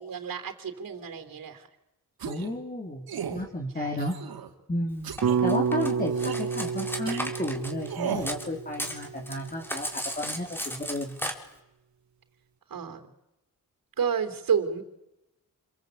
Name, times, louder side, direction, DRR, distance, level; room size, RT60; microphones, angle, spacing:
voice 1, 0.0-1.7 3.8-4.0 12.7-13.0 14.0-14.8, right 7 dB, 70° right, 7 dB, 3.5 m, -30 dB
voice 2, 2.2-4.2 4.7-11.2, left 1 dB, 25° left, -1 dB, 4.2 m, -33 dB
sound 1, 2.2-2.5 3.1-3.4 4.0-4.5 5.0-5.4 6.1-6.5 7.1-7.2 7.9-8.3, right 8 dB, 90° right, 2.9 m, -35 dB
Cutlery silverware, 5.2-8.5 8.7-11.3, equal, 5° left, 4.2 m, -35 dB
sound 2, 5.2-9.5, right 6 dB, 55° right, 1.1 m, -29 dB
28.5 x 23.0 x 8.5 m, 0.90 s
cardioid pair, 75°, 35 cm